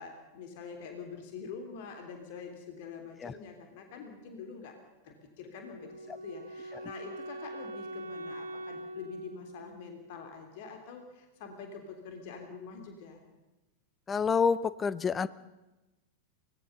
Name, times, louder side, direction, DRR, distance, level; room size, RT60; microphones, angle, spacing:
voice 1, 0.0-4.7 5.0-13.2, left 5 dB, 50° left, 5 dB, 3.2 m, -45 dB
Wind instrument woodwind instrument, 5.5-10.6, right 1 dB, 70° right, 1.2 m, -43 dB
voice 2, 14.1-15.3, left 6 dB, 20° left, 18 dB, 0.7 m, -27 dB
24.0 x 19.0 x 6.8 m, 1.0 s
figure-of-eight pair, 90°, 0 cm